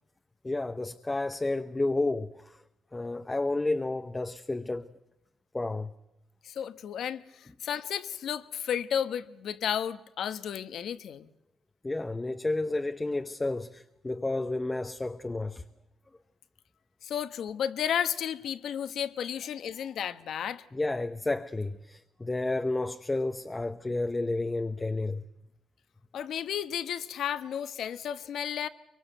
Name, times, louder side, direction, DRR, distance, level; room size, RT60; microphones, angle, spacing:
voice 1, 0.4-2.6 2.9-4.9 5.5-5.9 11.8-15.6 20.7-25.2, left 2 dB, 20° left, 0.9 m, -31 dB
voice 2, 6.4-11.3 17.0-20.6 26.1-28.7, left 9 dB, 70° left, 1.1 m, -33 dB
24.0 x 22.5 x 7.9 m
cardioid pair, 90°, 0 cm